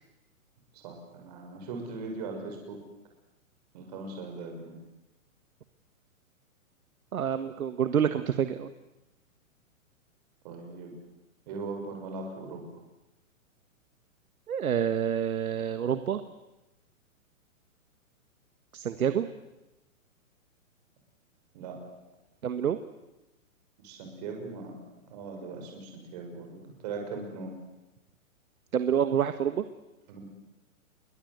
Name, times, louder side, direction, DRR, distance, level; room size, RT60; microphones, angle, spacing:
voice 1, 0.7-2.8 3.7-4.7 10.4-10.9 11.5-12.8 21.5-21.8 23.8-24.7 25.1-27.5 30.1-30.2, right 3 dB, 30° right, 2 dB, 6.3 m, -39 dB
voice 2, 7.1-8.7 14.5-16.2 18.7-19.3 22.4-22.8 28.7-29.6, right 8 dB, 90° right, 10 dB, 1.7 m, -27 dB
29.5 x 23.0 x 8.2 m, 0.98 s
hypercardioid pair, 175°, 41 cm